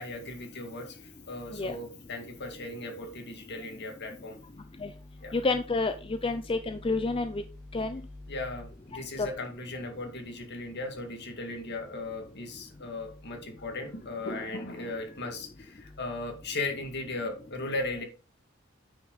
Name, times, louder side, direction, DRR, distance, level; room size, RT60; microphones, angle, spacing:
voice 1, 0.0-4.4 5.2-5.3 8.3-18.0, left 2 dB, 55° left, 4 dB, 2.1 m, -37 dB
voice 2, 5.3-5.9 6.2-7.4 7.7-8.0 9.2-9.3, left 3 dB, 25° left, 9 dB, 0.5 m, -28 dB
9.4 x 6.0 x 4.0 m, 0.35 s
head